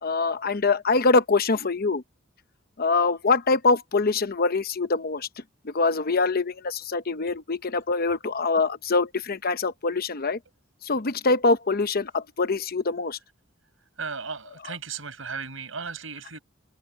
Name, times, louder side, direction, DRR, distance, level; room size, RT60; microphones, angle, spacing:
voice 1, 0.0-2.0 2.8-5.3 5.6-10.4 10.8-13.2, left 3 dB, 50° left, 0.9 m, -24 dB
voice 2, 14.0-16.4, right 5 dB, 85° right, 6.2 m, -35 dB
open air
head